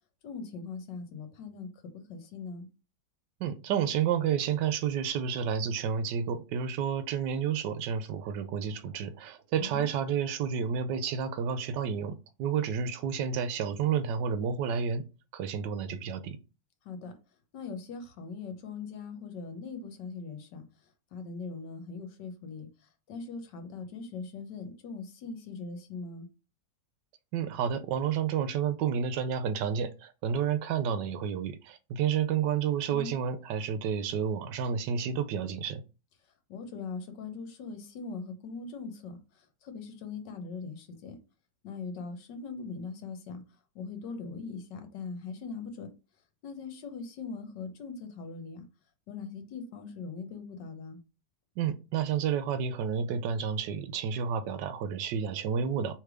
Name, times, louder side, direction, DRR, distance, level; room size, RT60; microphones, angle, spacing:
voice 1, 0.2-1.7 2.1-2.7 9.5-10.0 16.8-17.1 17.5-20.6 21.1-22.7 23.1-26.3 32.9-33.2 36.5-39.2 39.6-41.2 41.6-43.4 43.7-45.9 46.4-48.7 49.1-51.0, left 4 dB, 75° left, 1.5 m, -40 dB
voice 2, 3.4-15.0 15.3-16.4 27.3-35.8 51.6-56.0, right 7 dB, 80° right, 1.2 m, -30 dB
3.3 x 3.2 x 4.8 m
omnidirectional pair, 1.9 m